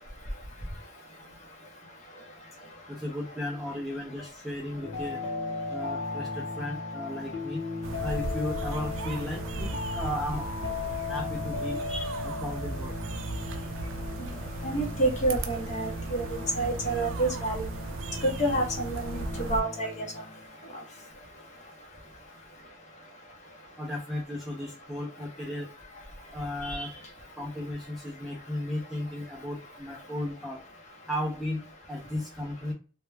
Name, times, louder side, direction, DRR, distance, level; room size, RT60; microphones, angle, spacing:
voice 1, 2.9-5.2 5.7-7.6 8.0-9.7 10.0-10.5 11.1-11.8 12.2-13.0 23.8-25.7 26.3-26.9 27.4-30.6 31.1-31.6 31.9-32.7, left 1 dB, ahead, -4 dB, 0.3 m, -35 dB
sound 1, 4.8-20.5, left 3 dB, 75° left, 0.7 m, -37 dB
sound 2, 7.8-19.6, right 3 dB, 80° right, 0.3 m, -37 dB
voice 2, 14.6-16.2 16.6-17.6 18.2-19.2 19.5-20.1 26.6-26.9, right 2 dB, 35° left, 1 dB, 0.7 m, -28 dB
2.2 x 2.1 x 3.1 m, 0.35 s
head